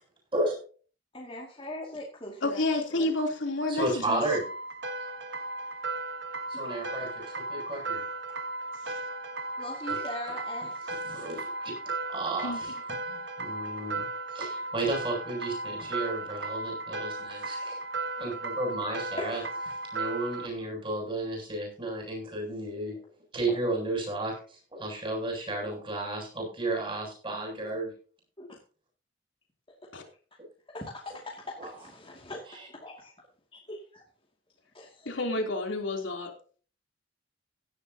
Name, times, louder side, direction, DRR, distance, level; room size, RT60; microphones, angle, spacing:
voice 1, 1.1-2.6 2.9-3.1 6.5-7.0 9.6-11.0 19.2-19.6 28.4-28.5 30.7-32.5 32.7-33.1 33.5-34.0 34.7-35.1, left 1 dB, 30° left, -3 dB, 2.3 m, -41 dB
voice 2, 2.4-4.2 8.8-9.0 12.4-12.8 29.9-30.0 35.0-36.3, left 2 dB, 75° left, 3 dB, 3.3 m, -30 dB
voice 3, 3.7-4.4 6.5-8.0 9.9-10.0 11.0-11.5 12.1-12.7 13.1-14.1 14.3-17.8 18.2-19.4 19.9-23.0 23.3-27.9 31.6-31.7 32.5-32.7, right 2 dB, 25° right, 0 dB, 7.8 m, -33 dB
sound 1, 4.3-20.5, right 3 dB, 60° right, 1.3 m, -36 dB
17.0 x 11.0 x 2.9 m, 0.40 s
head